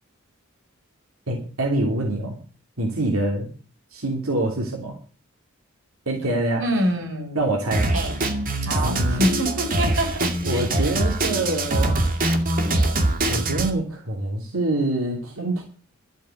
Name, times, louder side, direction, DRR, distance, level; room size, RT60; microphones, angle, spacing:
voice 1, 1.3-2.4 2.8-3.5 3.9-5.0 6.1-6.6 7.3-7.9 8.8-9.3 10.4-12.0 13.3-15.6, right 2 dB, 90° right, 0 dB, 3.2 m, -25 dB
voice 2, 6.6-7.5 7.9-8.2 8.6-10.9, equal, 65° right, 2 dB, 4.9 m, -26 dB
Drum kit, 7.7-13.7, right 2 dB, 40° right, 2.3 m, -23 dB
12.5 x 7.8 x 8.0 m, 0.38 s
head